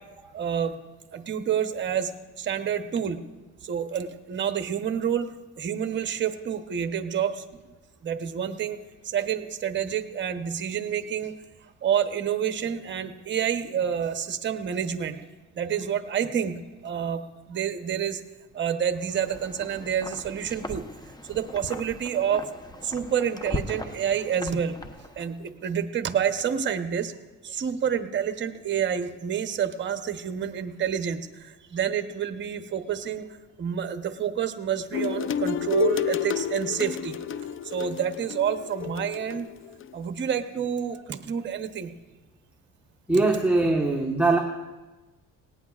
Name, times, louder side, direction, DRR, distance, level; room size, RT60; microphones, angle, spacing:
voice 1, 0.3-0.8 1.1-2.1 2.4-3.2 3.6-5.3 5.6-7.4 8.0-8.8 9.0-11.3 11.8-15.3 15.5-18.2 18.5-20.8 21.3-22.4 22.8-24.8 25.2-27.1 27.4-33.2 33.6-37.2 37.6-39.5 39.9-41.9, right 8 dB, 35° right, 8 dB, 0.9 m, -28 dB
Wind, 19.0-25.5, left 1 dB, 10° left, 0.8 m, -39 dB
sound 1, 34.9-39.9, left 9 dB, 40° left, 0.5 m, -30 dB
voice 2, 43.1-44.4, right 2 dB, 5° right, -1 dB, 1.3 m, -21 dB
18.0 x 18.0 x 2.4 m, 1.2 s
cardioid pair, 115°, 32 cm